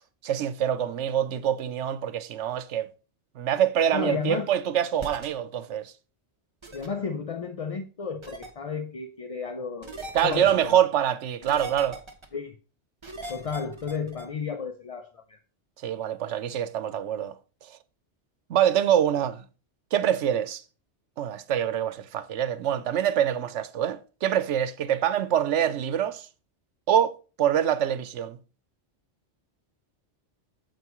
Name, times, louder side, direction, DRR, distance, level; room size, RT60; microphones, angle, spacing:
voice 1, 0.2-2.9 3.4-5.9 10.1-12.0 15.8-17.3 17.6-17.8 18.5-19.4 19.9-20.6 21.2-26.3 26.9-28.4, right 10 dB, 85° right, 1.0 m, -25 dB
voice 2, 3.9-4.5 6.7-10.8 12.3-12.6 13.3-15.4, left 5 dB, 45° left, 0.5 m, -33 dB
sound 1, 5.0-5.3 6.6-6.9 8.2-8.5 9.8-10.7 11.4-12.3 13.0-14.3, right 2 dB, 25° right, 1.0 m, -39 dB
9.3 x 7.2 x 3.0 m
omnidirectional pair, 1.2 m